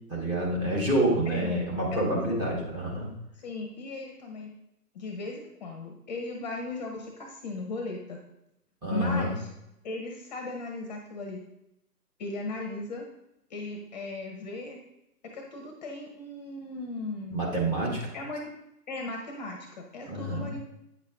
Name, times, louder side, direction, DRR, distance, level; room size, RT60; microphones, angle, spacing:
voice 1, 0.1-3.1 8.8-9.3 17.3-18.1 20.0-20.5, right 1 dB, 10° right, -3 dB, 1.4 m, -28 dB
voice 2, 1.3-1.6 1.9-2.7 3.3-4.5 4.9-8.2 8.9-9.5 9.8-11.4 12.2-13.1 13.5-14.8 15.2-17.4 18.1-18.5 18.9-20.6, left 2 dB, 25° left, 2 dB, 1.1 m, -37 dB
8.9 x 6.5 x 3.6 m, 0.84 s
figure-of-eight pair, 140°, 47 cm